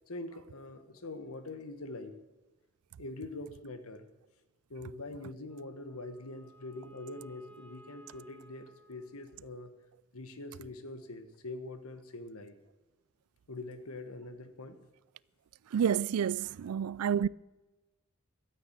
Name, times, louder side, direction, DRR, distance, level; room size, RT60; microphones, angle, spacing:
voice 1, 0.1-2.1 3.0-4.1 4.7-9.7 10.1-12.6 13.5-14.8, left 2 dB, 85° left, 1.4 m, -44 dB
Wind instrument woodwind instrument, 5.4-9.9, equal, 5° left, 2.2 m, -58 dB
voice 2, 15.7-17.3, right 8 dB, 85° right, 0.4 m, -29 dB
12.5 x 9.2 x 7.9 m
head